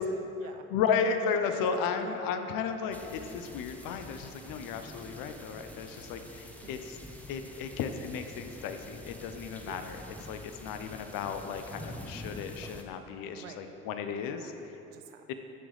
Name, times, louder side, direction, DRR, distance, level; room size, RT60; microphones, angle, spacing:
voice 1, 0.0-0.7 2.0-2.3 6.6-6.8 9.6-9.8 13.3-13.7 14.0-15.2, right 7 dB, 80° right, 7 dB, 0.7 m, -49 dB
voice 2, 0.7-7.0 7.3-10.0 10.3-14.7 15.3-15.4, left 6 dB, 60° left, 8 dB, 0.8 m, -34 dB
sound 1, 2.9-12.8, left 1 dB, 5° left, 1.0 m, -47 dB
13.5 x 6.1 x 3.3 m, 3.0 s
hypercardioid pair, 60°, 40 cm